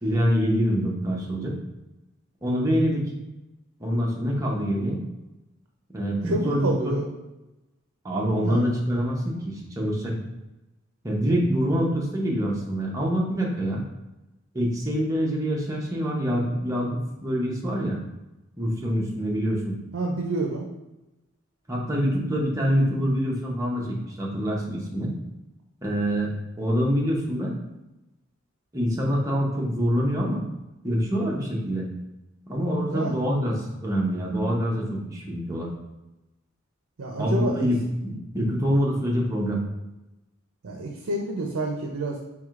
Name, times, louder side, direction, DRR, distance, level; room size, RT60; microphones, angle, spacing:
voice 1, 0.0-1.5 2.4-3.0 3.8-5.0 5.9-7.0 8.0-10.1 11.0-13.8 14.5-16.9 17.2-18.0 18.6-19.8 21.7-25.1 25.8-26.3 26.6-27.5 28.7-30.4 30.8-31.9 32.5-35.7 37.2-37.8 38.0-39.6, equal, 15° right, -3 dB, 0.7 m, -25 dB
voice 2, 6.3-7.1 8.4-8.6 19.9-20.6 32.8-33.1 37.0-37.7 40.6-42.2, right 2 dB, 70° right, 1 dB, 0.5 m, -28 dB
4.7 x 3.5 x 2.4 m, 1.0 s
head